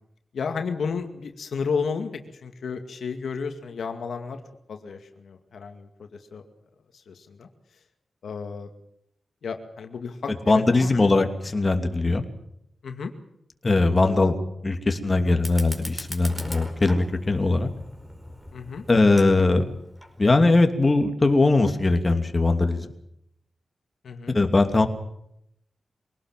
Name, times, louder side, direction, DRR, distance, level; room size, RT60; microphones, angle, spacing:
voice 1, 0.3-4.4 4.7-6.4 7.1-7.5 8.2-8.7 9.4-11.1 12.8-13.1 14.0-14.3 15.1-15.4 18.5-18.8 24.0-24.4, left 5 dB, 80° left, 6 dB, 2.2 m, -32 dB
voice 2, 10.5-12.2 13.6-14.3 14.6-17.7 18.9-19.6 20.2-22.9 24.3-24.9, left 2 dB, 30° left, 5 dB, 2.8 m, -20 dB
Fire, 15.3-20.3, equal, 5° right, 5.0 m, -40 dB
24.0 x 18.5 x 7.5 m, 0.77 s
wide cardioid pair, 85°, 0 cm